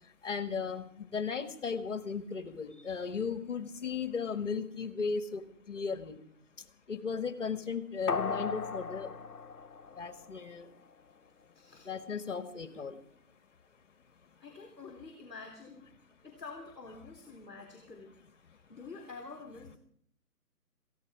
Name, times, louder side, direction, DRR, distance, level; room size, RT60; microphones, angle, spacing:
voice 1, 0.2-6.2 6.9-9.1 10.0-10.7 11.9-13.0, left 5 dB, 50° left, 10 dB, 1.9 m, -36 dB
sound 1, 8.1-10.6 11.0-11.1, left 5 dB, 65° left, 1.3 m, -37 dB
voice 2, 11.5-11.9 14.4-15.9 16.2-18.1 18.7-19.8, left 4 dB, 5° right, -12 dB, 1.2 m, -47 dB
19.0 x 15.5 x 4.9 m, 0.63 s
hypercardioid pair, 170°, 47 cm